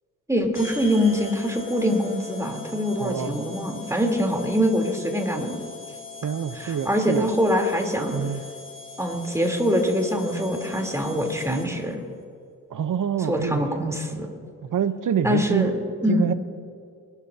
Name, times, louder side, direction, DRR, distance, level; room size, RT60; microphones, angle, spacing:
voice 1, 0.3-5.6 6.5-8.2 9.0-12.0 13.3-14.3 15.2-16.3, equal, 5° right, 1 dB, 3.6 m, -24 dB
sound 1, 0.5-11.9, left 4 dB, 30° left, 2.8 m, -41 dB
voice 2, 3.0-3.4 6.2-7.3 8.1-8.4 12.7-13.6 14.6-15.7 16.1-16.3, right 8 dB, 50° right, 11 dB, 1.0 m, -26 dB
24.5 x 13.0 x 2.9 m, 2.3 s
supercardioid pair, 55°, 39 cm